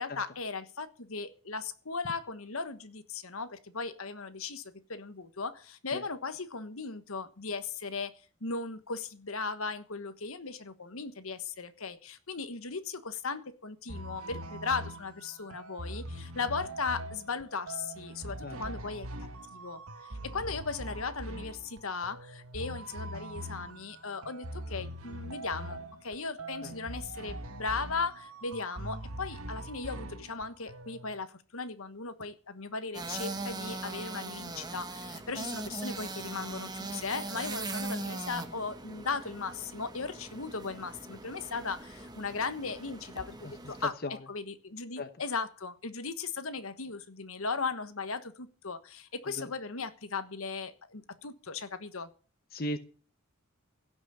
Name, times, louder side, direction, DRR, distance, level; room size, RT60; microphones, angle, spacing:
voice 1, 0.0-8.1 8.4-19.1 19.5-19.8 20.2-44.0 44.3-52.1, left 4 dB, 75° left, 11 dB, 1.3 m, -37 dB
voice 2, 5.9-6.0 18.4-18.5 26.6-26.7 44.0-44.2 45.0-45.1 49.4-49.5 52.5-52.8, left 1 dB, 45° left, 9 dB, 1.0 m, -35 dB
sound 1, 13.9-31.2, right 1 dB, 85° right, 1.7 m, -42 dB
sound 2, 32.9-43.9, right 2 dB, 20° right, 1.2 m, -40 dB
16.5 x 6.2 x 8.8 m, 0.38 s
head